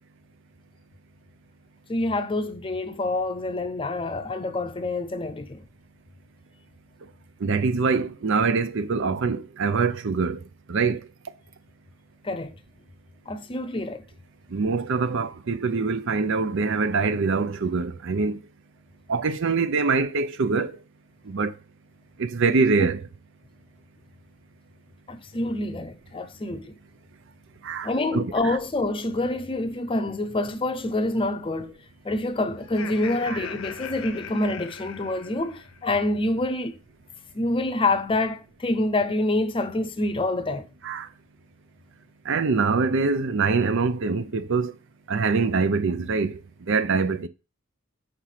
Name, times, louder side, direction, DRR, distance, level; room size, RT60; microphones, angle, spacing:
voice 1, 1.9-5.6 12.2-12.6 13.3-14.0 25.1-26.7 27.8-31.8 32.0-36.8 37.3-40.7, left 2 dB, 25° left, 0.6 m, -27 dB
voice 2, 7.4-10.4 10.7-11.0 14.5-18.4 19.1-20.7 21.3-21.5 22.2-23.0 27.6-28.6 33.3-33.4 40.8-41.1 42.3-44.7 45.1-46.4 46.7-47.3, right 4 dB, 65° right, 0.6 m, -24 dB
Laughter, 32.6-35.8, left 7 dB, 80° left, 0.7 m, -39 dB
5.9 x 3.3 x 5.6 m
head